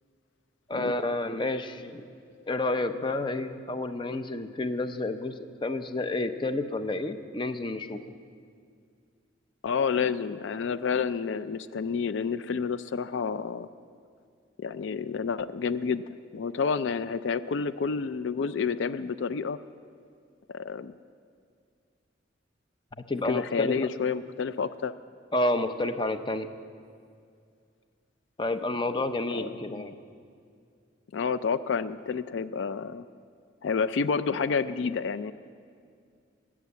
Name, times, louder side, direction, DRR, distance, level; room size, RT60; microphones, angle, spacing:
voice 1, 0.7-2.0 2.5-5.3 5.6-8.0 23.1-23.9 25.3-26.5 28.4-30.0, left 2 dB, 25° left, 9 dB, 0.6 m, -30 dB
voice 2, 9.6-13.7 14.6-19.6 20.5-20.9 23.2-24.9 29.3-29.9 31.1-33.1 33.6-35.3, left 5 dB, 75° left, 14 dB, 0.4 m, -29 dB
21.0 x 7.5 x 8.1 m, 2.3 s
head